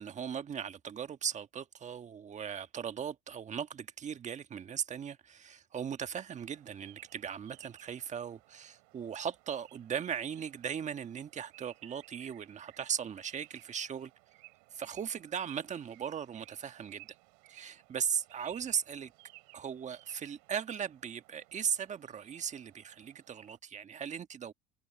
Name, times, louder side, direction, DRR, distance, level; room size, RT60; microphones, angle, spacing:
voice 1, 0.0-14.1 14.7-17.1 17.5-19.1 19.5-24.5, right 8 dB, 40° right, 1.4 m, -38 dB
sound 1, 6.4-23.6, right 30 dB, 90° right, 3.5 m, -59 dB
supercardioid pair, 95°, 19 cm